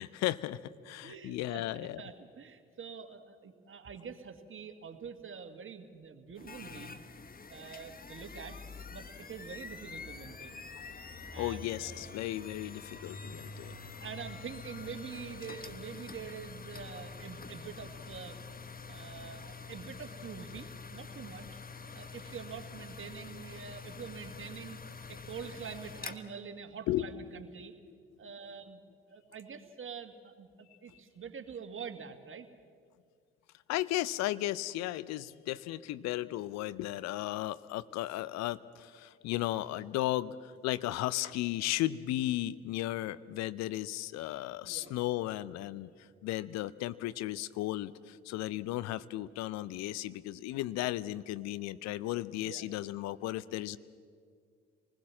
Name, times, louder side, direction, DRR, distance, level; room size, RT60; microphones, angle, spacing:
voice 1, 0.0-2.0 11.4-13.8 26.9-27.4 33.7-45.9 46.2-53.8, left 15 dB, 60° left, 17 dB, 0.7 m, -35 dB
voice 2, 1.0-7.0 7.5-8.6 8.9-10.7 11.3-12.2 14.0-18.4 18.9-21.6 21.9-24.8 25.1-27.7 28.2-28.8 29.1-32.5 44.6-45.0 48.4-48.5 52.4-52.8, right 6 dB, 40° right, 8 dB, 2.0 m, -46 dB
sound 1, 6.4-26.2, left 4 dB, 30° left, 1.4 m, -46 dB
26.0 x 20.0 x 7.4 m, 2.1 s
figure-of-eight pair, 40°, 30 cm